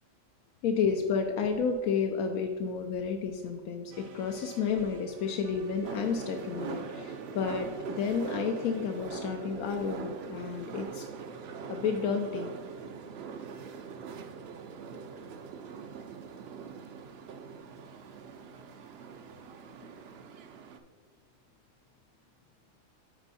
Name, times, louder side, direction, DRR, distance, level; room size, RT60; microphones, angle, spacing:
voice 1, 0.6-11.1 11.7-12.5, left 6 dB, 85° left, 4 dB, 1.0 m, -31 dB
sound 1, 3.9-9.0, right 4 dB, 90° right, 1.2 m, -50 dB
sound 2, 5.8-20.8, right 6 dB, 60° right, 0.7 m, -42 dB
8.9 x 4.5 x 4.1 m, 1.5 s
omnidirectional pair, 1.4 m